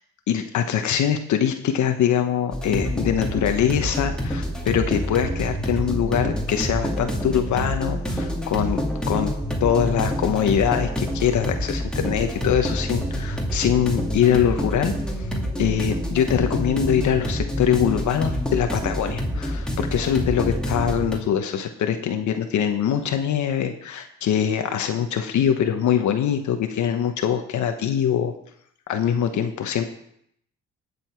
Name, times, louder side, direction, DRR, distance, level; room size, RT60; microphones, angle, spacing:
voice 1, 0.3-8.8 9.1-9.3 9.6-14.9 15.6-28.3 28.9-29.8, left 9 dB, 70° left, 6 dB, 1.2 m, -23 dB
sound 1, 2.5-21.2, equal, 5° left, 2.3 m, -27 dB
17.5 x 7.0 x 4.6 m, 0.70 s
cardioid pair, 90°, 30 cm